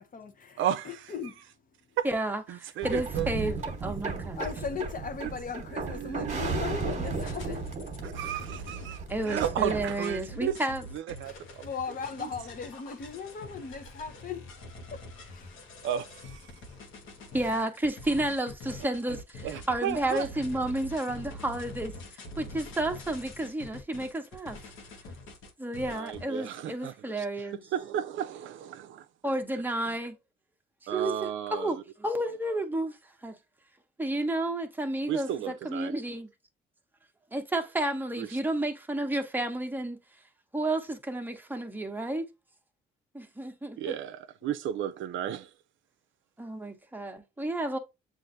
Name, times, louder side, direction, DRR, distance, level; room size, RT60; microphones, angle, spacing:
voice 1, 0.0-0.6 1.1-1.4 4.4-7.8 8.2-8.4 11.2-11.4 11.6-14.5 14.9-15.6, left 6 dB, 45° left, 0.8 m, -38 dB
voice 2, 0.6-1.1 2.0-2.1 2.5-3.3 3.9-4.0 5.2-5.3 5.7-6.4 8.0-10.6 10.9-11.7 12.2-12.3 15.8-16.6 19.4-20.3 25.8-27.3 27.5-29.1 29.9-30.0 30.9-31.8 35.1-36.0 38.2-38.4 43.8-45.5, right 10 dB, 75° right, 0.5 m, -34 dB
voice 3, 2.0-4.4 9.1-10.8 17.3-21.9 22.4-24.6 25.6-27.6 29.2-30.2 30.9-31.1 31.5-33.0 33.2-33.4 34.0-36.3 37.3-40.0 40.5-42.3 43.1-43.9 46.4-47.8, right 1 dB, 10° right, 0.8 m, -31 dB
sound 1, 2.8-9.9, right 4 dB, 35° right, 1.1 m, -35 dB
sound 2, 6.9-26.2, left 1 dB, 85° left, 1.0 m, -44 dB
7.5 x 2.5 x 2.6 m
cardioid pair, 90°, 20 cm